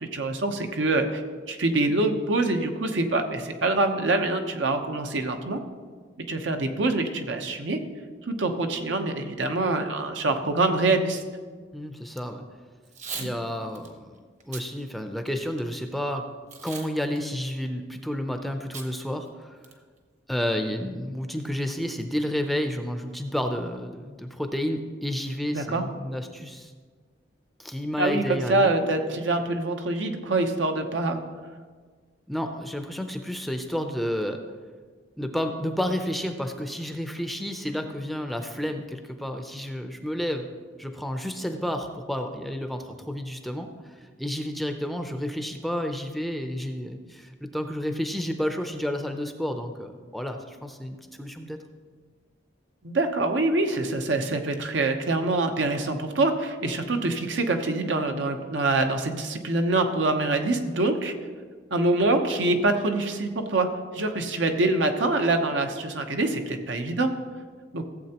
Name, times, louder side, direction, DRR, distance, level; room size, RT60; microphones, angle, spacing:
voice 1, 0.0-1.2 1.5-5.6 6.3-7.8 8.3-11.2 13.2-13.3 25.5-25.8 28.0-31.2 52.8-61.1 61.7-63.7 63.9-67.1 67.7-67.8, right 2 dB, 80° right, 5 dB, 0.9 m, -25 dB
voice 2, 11.7-12.4 13.1-16.3 16.6-19.6 20.3-26.7 27.6-28.7 32.3-34.4 35.2-40.5 40.8-51.6, equal, ahead, 5 dB, 0.5 m, -31 dB
Packing tape duct tape / Tearing, 12.8-13.3 13.7-13.9 14.4-14.7 15.2-15.8 16.5-16.9 17.2-17.3 18.7-18.9 19.2-19.3 19.6-20.0, right 5 dB, 40° right, 0.9 m, -38 dB
15.0 x 7.7 x 2.9 m, 1.5 s
head